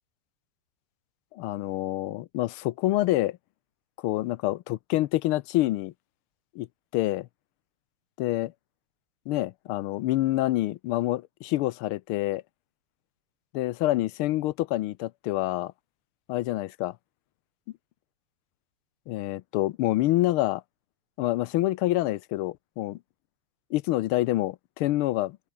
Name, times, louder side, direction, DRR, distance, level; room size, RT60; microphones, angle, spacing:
voice 1, 1.3-3.4 4.0-5.9 6.5-6.7 6.9-7.3 8.2-8.5 9.3-12.4 13.5-15.7 16.3-17.0 19.1-20.6 21.2-23.0 23.7-25.4, left 16 dB, 80° left, 1.5 m, -27 dB
open air
omnidirectional pair, 2.4 m